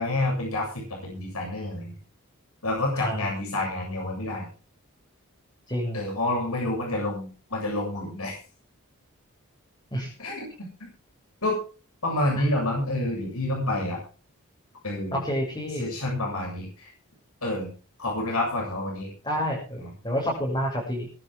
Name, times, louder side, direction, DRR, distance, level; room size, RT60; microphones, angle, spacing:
voice 1, 0.0-2.0 2.6-4.5 5.9-8.4 10.2-10.7 11.4-11.6 12.0-14.0 14.8-15.2 15.8-16.9 17.4-17.7 18.0-19.1 19.8-19.9, left 1 dB, 80° left, 0 dB, 7.5 m, -28 dB
voice 2, 2.9-3.3 5.7-6.0 9.9-10.1 12.3-12.4 15.1-15.9 19.2-21.1, equal, 20° left, -3 dB, 7.0 m, -29 dB
22.0 x 11.5 x 3.7 m, 0.37 s
head